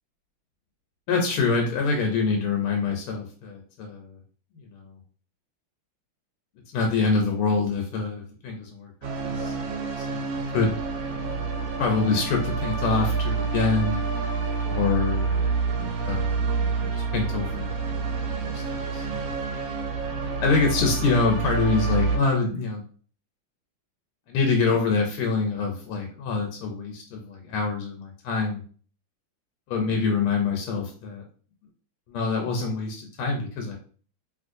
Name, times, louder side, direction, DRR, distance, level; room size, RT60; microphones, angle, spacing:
voice 1, 1.1-4.2 4.5-5.0 6.7-10.7 11.8-14.0 14.6-17.7 18.4-19.3 20.4-22.8 24.3-28.6 29.7-31.2 32.1-33.8, left 4 dB, 80° left, 2 dB, 1.5 m, -26 dB
sound 1, 9.0-22.2, right 4 dB, 70° right, 1.2 m, -28 dB
3.0 x 3.0 x 2.6 m, 0.42 s
omnidirectional pair, 2.4 m